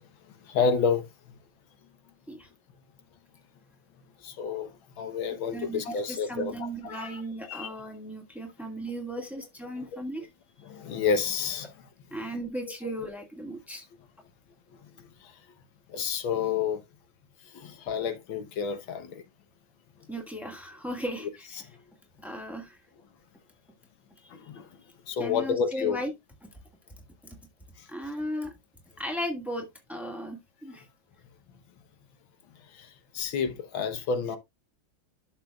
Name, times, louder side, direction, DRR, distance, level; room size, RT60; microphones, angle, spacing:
voice 1, 0.5-1.1 4.2-4.7 5.0-7.2 7.5-7.7 9.8-9.9 10.6-11.7 15.9-16.8 17.5-19.2 24.4-24.7 25.1-26.0 32.8-32.9 33.1-34.4, left 6 dB, 80° left, 1.9 m, -29 dB
voice 2, 6.1-10.3 12.1-13.8 20.1-21.6 22.2-22.8 25.2-26.1 27.2-27.4 27.9-28.5 29.0-30.8, equal, ahead, 1.6 m, -36 dB
11.5 x 6.7 x 2.4 m
omnidirectional pair, 2.1 m